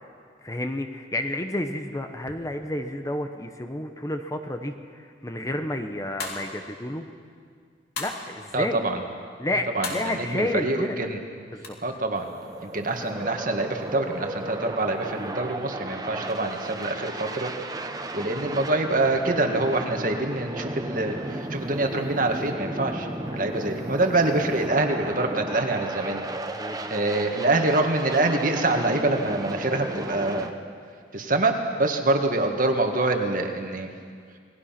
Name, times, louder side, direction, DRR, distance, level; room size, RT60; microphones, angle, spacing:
voice 1, 0.4-7.1 8.0-8.8 9.4-11.0 11.5-11.8 23.3-23.4 26.5-27.0, left 1 dB, 20° left, 6 dB, 1.0 m, -30 dB
sound 1, 6.2-6.6 8.0-8.3 9.8-10.2 11.6-11.7, left 4 dB, 60° left, 3.1 m, -33 dB
voice 2, 8.5-9.0 9.7-11.2 11.8-12.3 12.6-17.5 18.1-23.1 23.4-26.2 26.9-30.5 31.1-33.9, right 2 dB, 45° right, 4 dB, 2.0 m, -25 dB
sound 2, 12.2-30.5, right 1 dB, 20° right, 1.0 m, -35 dB
28.5 x 19.5 x 6.0 m, 2.1 s
head